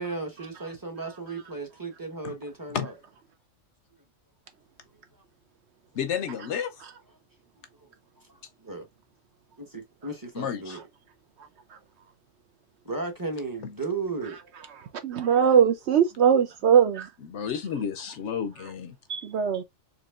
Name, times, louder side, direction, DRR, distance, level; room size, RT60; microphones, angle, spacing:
voice 1, 0.0-2.9 8.6-8.9 9.6-10.8 12.8-14.4, right 3 dB, 20° right, 0.8 m, -34 dB
voice 2, 5.9-6.8 10.3-10.8 17.2-19.0, left 7 dB, 65° left, 0.8 m, -31 dB
voice 3, 14.8-17.1 19.1-19.6, right 8 dB, 65° right, 0.8 m, -21 dB
4.3 x 2.9 x 2.4 m
omnidirectional pair, 1.4 m